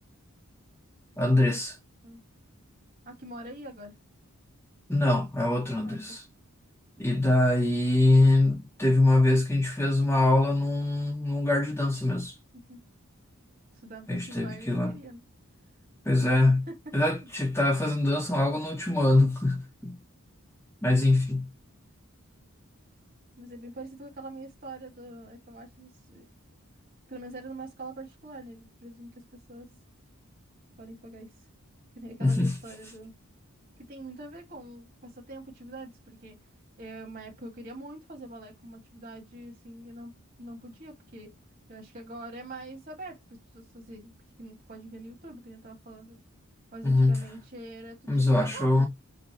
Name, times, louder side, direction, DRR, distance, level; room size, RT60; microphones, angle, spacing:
voice 1, 1.2-1.8 4.9-6.2 7.0-12.4 14.1-14.9 16.0-16.7 16.9-20.0 20.8-21.5 32.2-32.6 46.8-47.2 48.1-48.9, left 2 dB, 10° left, 0.7 m, -23 dB
voice 2, 3.1-4.0 5.8-6.2 12.5-12.8 13.7-15.2 16.7-16.8 17.1-17.3 23.4-26.3 27.1-29.7 30.8-31.3 32.0-33.1 33.8-36.4 36.8-40.1 40.4-41.3 41.7-44.1 44.4-46.2 46.7-48.9, right 2 dB, 40° right, 1.8 m, -44 dB
5.1 x 2.2 x 2.9 m
head